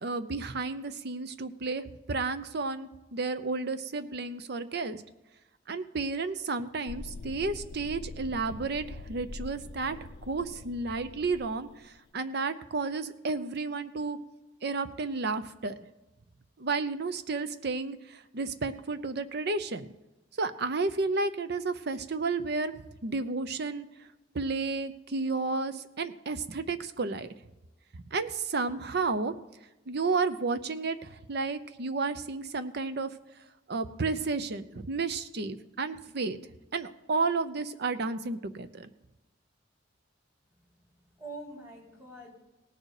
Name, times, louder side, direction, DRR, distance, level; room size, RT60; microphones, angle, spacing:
voice 1, 0.0-5.0 5.7-10.0 10.3-14.2 14.6-15.8 16.6-19.9 20.4-22.7 23.0-23.9 24.3-27.3 28.1-29.3 29.9-33.1 33.7-36.4 36.7-38.9, right 3 dB, 60° right, 12 dB, 0.7 m, -32 dB
sound 1, 6.9-12.0, left 3 dB, 65° left, 0.5 m, -44 dB
voice 2, 40.5-42.3, right 2 dB, 15° right, -3 dB, 3.6 m, -46 dB
18.5 x 6.6 x 4.9 m, 1.0 s
head